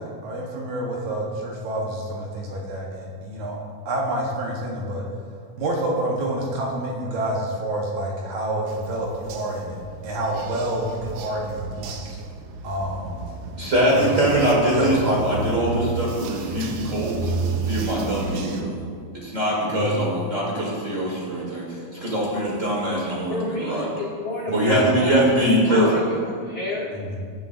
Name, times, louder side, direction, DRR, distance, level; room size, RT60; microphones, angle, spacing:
voice 1, 0.0-3.6 3.9-5.1 5.6-9.8 10.0-12.2 12.6-13.2 13.9-14.2 14.7-15.1 19.7-20.0 24.5-25.0 26.9-27.2, right 1 dB, 70° right, -2 dB, 2.4 m, -28 dB
sound 1, 8.7-18.6, right 4 dB, 85° right, 2.3 m, -32 dB
voice 2, 13.6-17.3 17.6-18.7 19.1-23.9 24.5-26.0, right 1 dB, 45° right, -4 dB, 1.0 m, -22 dB
voice 3, 23.3-25.3 25.7-26.9, left 2 dB, 75° left, -3 dB, 1.1 m, -29 dB
17.5 x 6.7 x 2.5 m, 2.1 s
omnidirectional pair, 3.9 m